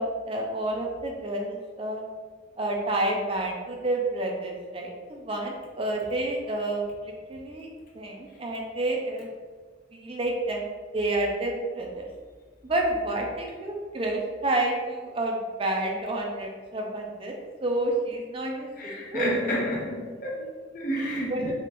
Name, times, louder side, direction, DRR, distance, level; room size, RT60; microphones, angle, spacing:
voice 1, 0.0-2.0 2.6-7.7 7.9-9.3 9.9-10.7 10.9-12.1 12.6-19.2 21.3-21.5, right 1 dB, 30° right, 0 dB, 0.5 m, -29 dB
voice 2, 18.8-21.5, equal, 50° left, -4 dB, 1.0 m, -30 dB
3.5 x 2.5 x 4.3 m, 1.5 s
head